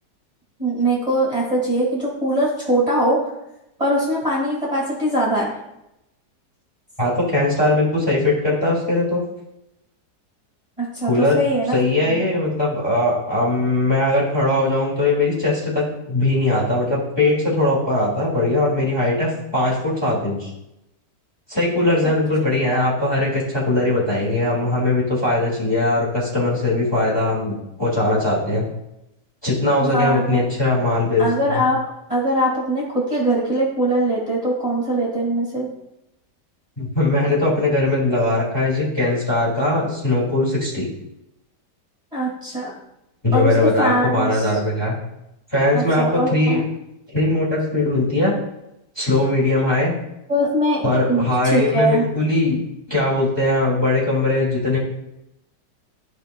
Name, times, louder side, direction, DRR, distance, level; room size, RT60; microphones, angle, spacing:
voice 1, 0.6-3.2 3.8-5.5 10.8-11.8 12.0-12.2 22.0-22.1 29.8-30.4 31.2-31.8 32.1-35.7 42.1-42.7 43.3-44.4 45.7-46.6 50.3-52.1, right 1 dB, 20° right, -5 dB, 2.1 m, -21 dB
voice 2, 7.0-9.2 11.0-11.4 11.7-20.5 21.5-28.7 29.4-31.6 36.8-40.9 43.2-44.9 45.5-46.6 47.1-48.3 49.0-49.9 50.8-52.6 52.9-54.8, left 2 dB, 15° left, -6 dB, 2.4 m, -20 dB
14.0 x 5.2 x 2.3 m, 0.87 s
omnidirectional pair, 1.8 m